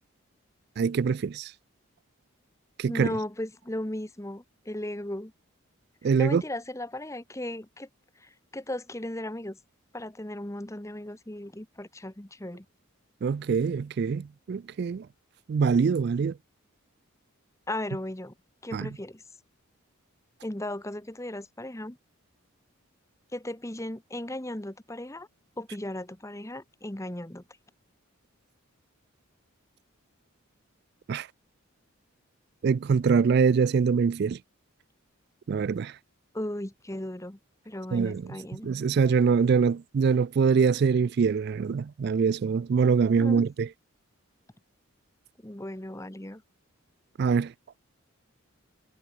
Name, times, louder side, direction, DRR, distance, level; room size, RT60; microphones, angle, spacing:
voice 1, 0.8-1.5 2.8-3.1 6.0-6.4 13.2-15.1 15.5-16.3 18.7-18.9 31.1-31.3 32.6-34.4 35.5-35.9 37.9-38.2 38.6-43.7 47.2-47.5, right 5 dB, 50° right, 0.3 m, -24 dB
voice 2, 2.9-5.3 6.2-7.9 8.2-9.6 9.9-12.6 17.7-18.3 18.6-19.2 20.4-22.0 23.3-25.3 25.6-27.4 36.3-37.4 37.6-38.7 43.2-43.5 45.4-46.4, left 1 dB, 15° left, 1.1 m, -36 dB
head